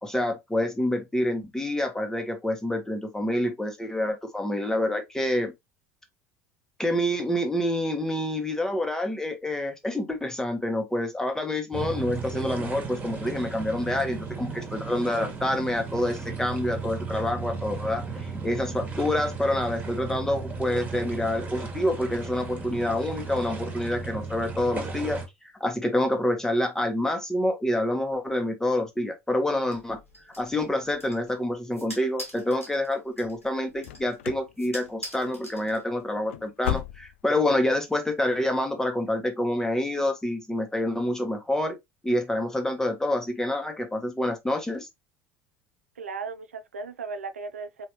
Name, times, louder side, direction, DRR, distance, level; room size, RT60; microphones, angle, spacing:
voice 1, 0.0-5.5 6.8-25.2 25.6-30.0 30.4-41.8 42.0-44.9, left 1 dB, 5° left, 1.1 m, -27 dB
sound 1, 11.7-25.3, right 4 dB, 20° right, 1.5 m, -35 dB
sound 2, 29.7-36.2, equal, 85° left, 1.2 m, -45 dB
sound 3, 33.8-34.5 34.8-35.2 35.5-35.7 36.1-37.4 37.7-37.8 38.3-38.4, left 11 dB, 65° left, 0.4 m, -34 dB
voice 2, 46.0-47.9, right 4 dB, 75° right, 0.4 m, -36 dB
4.3 x 3.1 x 2.8 m
figure-of-eight pair, 70°, 7 cm